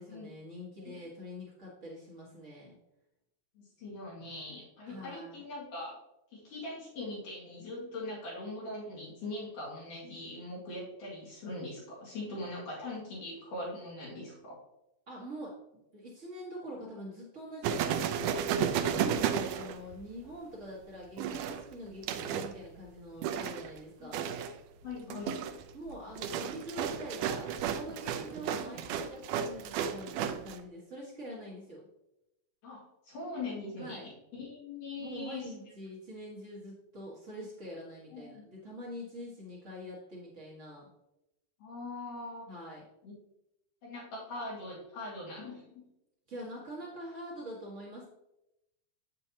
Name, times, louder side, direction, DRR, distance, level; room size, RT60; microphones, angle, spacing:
voice 1, 0.0-2.7 4.9-5.4 15.1-15.5 15.9-18.5 19.0-24.3 25.7-31.9 33.8-34.1 35.0-40.9 42.5-42.8 46.3-48.0, equal, 50° right, -5 dB, 0.8 m, -45 dB
voice 2, 3.6-6.0 6.3-14.6 19.1-19.3 24.0-24.3 24.8-25.4 32.6-35.5 38.1-38.4 41.6-42.5 43.0-43.1 43.8-45.9, left 2 dB, 65° left, -6 dB, 3.6 m, -41 dB
sound 1, 17.6-20.3 21.2-22.6 23.2-23.8 24.1-24.6 25.0-30.6, right 8 dB, 80° right, 2.0 m, -33 dB
8.7 x 7.6 x 2.8 m, 0.88 s
omnidirectional pair, 4.1 m